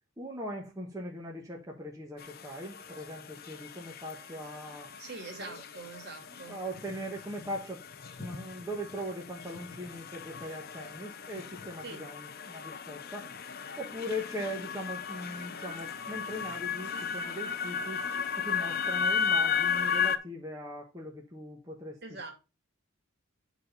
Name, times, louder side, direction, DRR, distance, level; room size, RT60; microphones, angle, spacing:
voice 1, 0.2-4.9 5.4-5.6 6.3-7.8 8.2-13.3 13.8-18.1 18.3-22.3, equal, 15° right, 1.2 m, -40 dB
sound 1, 2.2-20.2, left 7 dB, 45° left, 0.7 m, -35 dB
voice 2, 5.0-6.6 11.8-12.0 22.0-22.3, right 3 dB, 50° right, 2.6 m, -43 dB
9.4 x 4.1 x 5.5 m
head